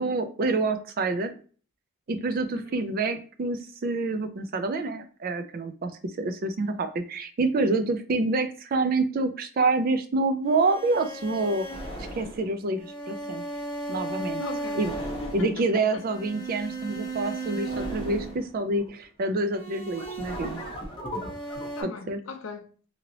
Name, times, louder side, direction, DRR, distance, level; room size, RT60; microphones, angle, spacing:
voice 1, 0.0-1.3 2.1-11.7 12.1-13.4 13.9-14.4 14.8-14.9 15.3-20.6 21.8-22.2, right 3 dB, 45° right, 0.4 m, -27 dB
voice 2, 2.5-2.9 14.4-16.0 21.8-22.7, left 4 dB, 70° left, 0.4 m, -39 dB
sound 1, 10.4-18.9 19.5-21.8, right 2 dB, 25° left, 0.8 m, -35 dB
2.9 x 2.7 x 2.7 m
head